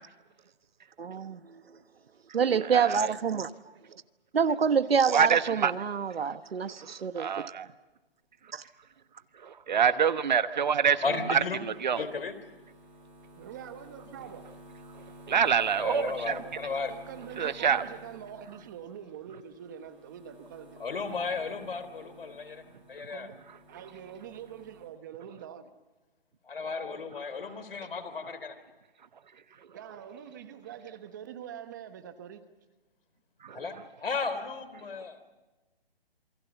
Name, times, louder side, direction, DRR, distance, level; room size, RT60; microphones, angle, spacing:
voice 1, 1.0-1.8 2.3-3.7 4.3-7.4 8.5-8.6, right 6 dB, 80° right, 13 dB, 1.3 m, -27 dB
voice 2, 2.6-3.1 5.1-5.7 6.8-7.7 9.4-12.0 15.3-16.4 17.4-17.8 27.3-27.6 33.4-33.7, right 7 dB, 50° right, 13 dB, 1.1 m, -27 dB
sound 1, 10.0-24.8, equal, 5° right, 6.3 m, -53 dB
voice 3, 11.0-11.6 11.9-12.4 15.7-16.9 20.8-22.6 22.9-23.3 26.5-28.5 33.5-35.2, left 4 dB, 70° left, 12 dB, 3.4 m, -34 dB
voice 4, 13.4-14.5 16.1-20.8 23.1-23.4 23.7-25.7 29.7-32.4, right 9 dB, 20° right, 10 dB, 1.0 m, -45 dB
27.5 x 22.5 x 7.0 m, 1.2 s
hypercardioid pair, 165°, 30 cm